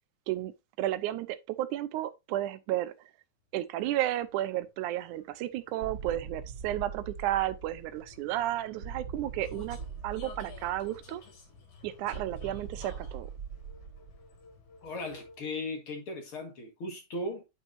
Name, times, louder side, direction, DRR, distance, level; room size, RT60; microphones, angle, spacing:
voice 1, 0.8-3.1 3.5-9.8 10.0-11.2 11.8-13.3, right 13 dB, 90° right, 2.2 m, -32 dB
Vehicle, 3.8-15.6, left 4 dB, 80° left, 4.2 m, -54 dB
sound 1, 5.8-8.1 8.8-11.1 12.1-14.4, right 6 dB, 40° right, 3.0 m, -42 dB
voice 2, 14.8-17.4, left 2 dB, 50° left, 2.4 m, -37 dB
8.8 x 7.2 x 2.7 m
omnidirectional pair, 3.5 m